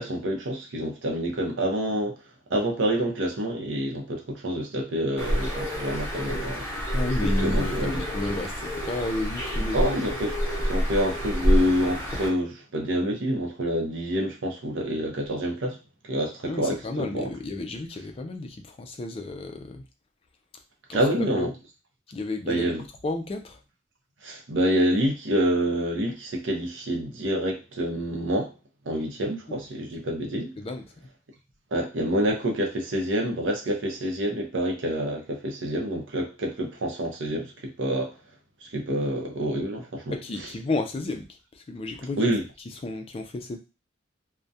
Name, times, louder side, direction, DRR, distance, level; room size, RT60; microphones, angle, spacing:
voice 1, 0.0-2.2 2.5-6.7 7.2-8.0 9.7-10.3 10.6-15.8 16.1-17.3 20.9-21.5 22.5-22.8 24.2-28.5 28.9-30.5 31.7-38.1 38.6-40.1 42.2-42.4, equal, 70° right, 0.6 m, -27 dB
Bird, 5.2-12.3, equal, 10° left, 0.8 m, -27 dB
voice 2, 6.9-10.2 16.4-19.8 20.9-21.5 22.1-22.7 23.0-23.6 29.5-29.6 30.6-30.8 40.1-41.3 41.5-42.2 42.8-43.6, left 2 dB, 30° left, 0.3 m, -32 dB
2.3 x 2.1 x 2.6 m
head